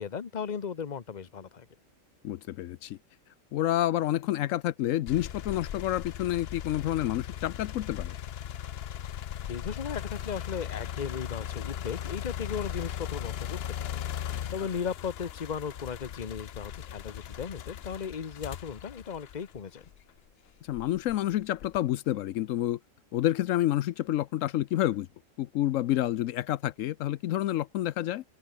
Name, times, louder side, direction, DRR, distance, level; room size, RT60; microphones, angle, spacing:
voice 1, 0.0-1.7 9.5-19.8, left 6 dB, 35° left, 1.1 m, -36 dB
voice 2, 2.2-3.0 3.5-8.1 20.7-22.8 23.1-25.1 25.4-28.2, left 13 dB, 80° left, 1.0 m, -29 dB
sound 1, 5.1-20.1 20.7-21.9, left 10 dB, 55° left, 0.8 m, -38 dB
open air
omnidirectional pair, 1.3 m